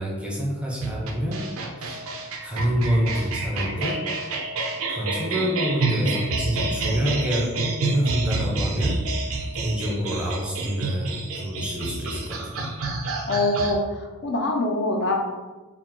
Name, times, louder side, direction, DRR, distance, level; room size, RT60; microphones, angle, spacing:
voice 1, 0.0-1.5 1.8-2.0 2.4-4.1 4.9-9.1 9.5-12.8, equal, 5° right, -3 dB, 0.5 m, -27 dB
sound 1, 0.8-13.7, right 3 dB, 70° right, 0.5 m, -28 dB
voice 2, 13.3-15.1, left 2 dB, 50° left, 1 dB, 0.5 m, -24 dB
4.6 x 2.0 x 3.8 m, 1.2 s
head